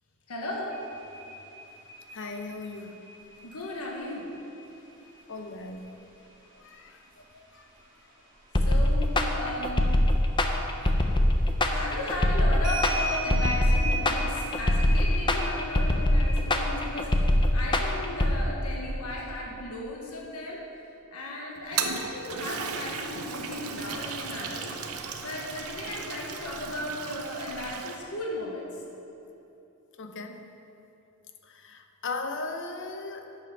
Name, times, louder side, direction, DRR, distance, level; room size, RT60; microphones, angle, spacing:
voice 1, 0.3-0.8 3.4-4.3 8.6-9.9 11.0-11.1 11.7-20.6 21.1-24.7 25.2-28.7, left 1 dB, 90° left, -2 dB, 1.4 m, -35 dB
sound 1, 0.7-7.3 7.7-9.3 9.7-11.0 11.7-11.8 12.1-17.2, right 1 dB, 40° right, 2.6 m, -39 dB
voice 2, 2.1-3.0 5.3-5.9 6.5-7.7 10.8-11.4 30.0-30.5 31.4-33.4, left 3 dB, 60° left, 6 dB, 0.8 m, -38 dB
sound 2, 8.5-18.4, left 1 dB, 20° left, 0.6 m, -23 dB
Toilet flush, 21.6-28.0, right 5 dB, 85° right, 0.8 m, -36 dB
9.3 x 7.3 x 6.0 m, 2.9 s
head